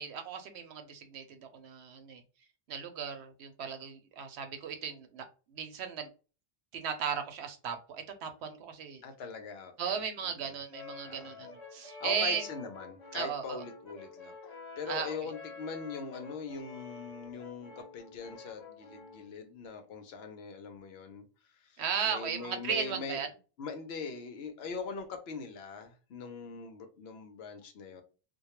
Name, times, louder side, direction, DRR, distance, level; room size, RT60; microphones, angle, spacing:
voice 1, 0.0-2.2 2.7-6.1 6.7-9.0 9.8-12.4 13.1-13.6 14.9-15.3 21.8-23.3, right 7 dB, 75° right, 0.8 m, -36 dB
voice 2, 9.0-10.6 11.0-11.3 11.8-21.2 21.5-23.2 23.6-28.0, left 4 dB, 75° left, 0.8 m, -42 dB
Brass instrument, 10.7-19.3, left 4 dB, 45° left, 0.6 m, -49 dB
2.2 x 2.2 x 2.9 m
omnidirectional pair, 1.1 m